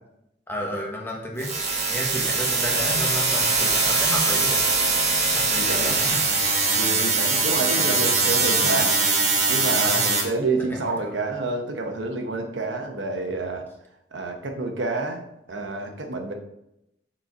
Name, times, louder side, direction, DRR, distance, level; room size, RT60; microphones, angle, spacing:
voice 1, 0.5-1.6 1.9-4.6 5.3-6.2 9.8-10.2 10.6-11.2, equal, 10° left, -1 dB, 1.2 m, -32 dB
sound 1, 1.4-10.2, right 3 dB, 35° right, 1.3 m, -22 dB
voice 2, 5.5-6.0 6.7-8.9 9.5-13.7 14.1-15.2 15.5-16.3, right 3 dB, 85° right, 4 dB, 1.0 m, -28 dB
6.5 x 4.4 x 4.5 m, 0.83 s
head